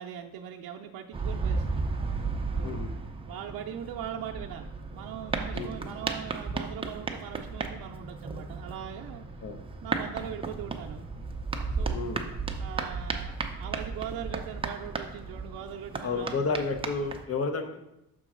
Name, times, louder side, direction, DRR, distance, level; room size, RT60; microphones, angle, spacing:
voice 1, 0.0-1.9 2.5-2.8 3.3-9.3 9.8-11.1 11.8-12.1 12.6-16.6, right 9 dB, 85° right, 0 dB, 0.5 m, -40 dB
sound 1, 1.1-17.3, right 4 dB, 15° right, 0.5 m, -34 dB
voice 2, 2.6-2.9 5.5-5.7 9.4-9.6 11.9-12.2 16.0-17.9, left 4 dB, 40° left, 6 dB, 0.8 m, -31 dB
6.1 x 3.8 x 6.1 m, 0.88 s
cardioid pair, 145°, 35 cm